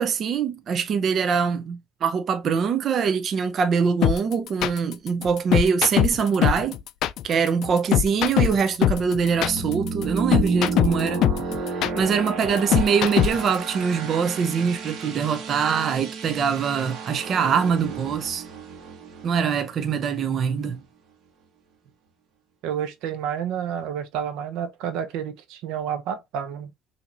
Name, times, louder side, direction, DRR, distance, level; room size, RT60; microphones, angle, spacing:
voice 1, 0.0-6.8 7.2-11.2 11.9-18.4 19.2-20.8, right 6 dB, 50° right, 0.6 m, -23 dB
sound 1, 4.0-13.6, left 12 dB, 70° left, 0.3 m, -22 dB
sound 2, 8.0-20.7, right 4 dB, 65° right, 1.3 m, -33 dB
voice 2, 22.6-26.7, right 8 dB, 85° right, 0.7 m, -30 dB
5.8 x 2.9 x 2.5 m
cardioid pair, 115°, 0 cm